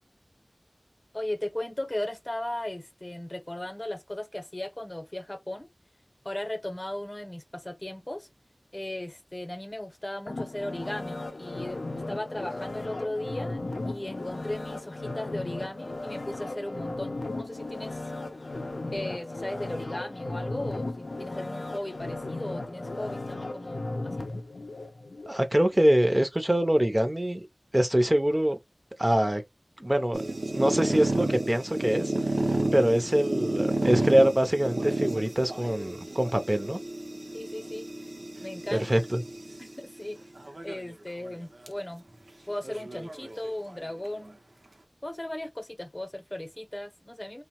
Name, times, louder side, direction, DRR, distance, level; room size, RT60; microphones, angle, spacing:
voice 1, 1.1-5.7 6.2-8.3 8.7-11.8 12.1-13.6 13.9-18.1 18.9-24.2 37.3-37.9 38.4-38.9 39.6-40.2 40.6-42.1 42.5-44.4 45.0-47.4, left 1 dB, 35° left, 0.7 m, -36 dB
sound 1, 10.3-25.3 25.7-25.9, left 2 dB, 90° left, 0.4 m, -36 dB
voice 2, 25.3-27.4 27.7-28.6 29.0-29.4 29.8-30.2 30.5-32.1 32.7-36.8 38.7-39.2, right 1 dB, 25° right, 0.5 m, -24 dB
sound 2, 30.1-39.6 40.4-40.9 41.3-41.4 41.7-41.8 42.6-43.8, right 2 dB, 80° right, 0.6 m, -31 dB
3.0 x 2.0 x 2.9 m
wide cardioid pair, 40°, 0 cm